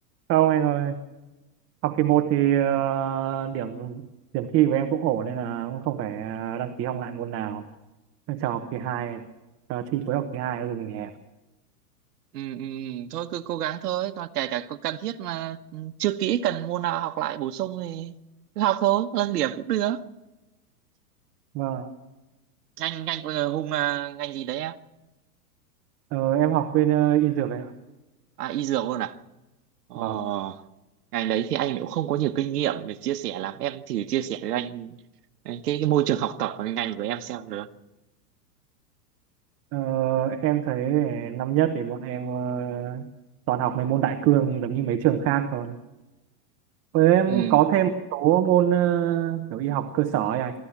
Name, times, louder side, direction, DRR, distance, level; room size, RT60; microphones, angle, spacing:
voice 1, 0.3-1.0 1.8-4.0 4.3-7.6 8.3-9.2 9.7-11.1 21.5-21.9 26.1-27.7 30.0-30.2 39.7-43.0 43.5-45.7 46.9-50.5, right 11 dB, 30° right, 1.1 m, -24 dB
voice 2, 12.3-18.1 18.6-20.0 22.8-24.7 28.4-29.2 29.9-30.6 31.1-35.0 35.4-37.7 47.3-47.6, right 12 dB, 75° right, 1.3 m, -28 dB
27.5 x 13.5 x 7.3 m
hypercardioid pair, 135°, 47 cm